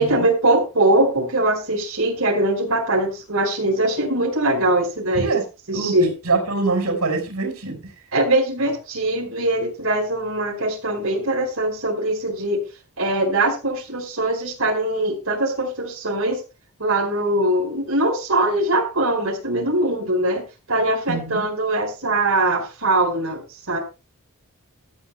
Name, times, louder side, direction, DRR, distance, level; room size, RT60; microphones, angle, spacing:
voice 1, 0.0-5.3 5.7-6.1 8.1-12.6 13.0-16.4 16.8-23.8, right 1 dB, 65° right, -1 dB, 4.8 m, -22 dB
voice 2, 6.2-7.8 21.1-21.4, right 3 dB, 85° right, 4 dB, 5.3 m, -23 dB
18.0 x 13.0 x 2.2 m, 0.31 s
head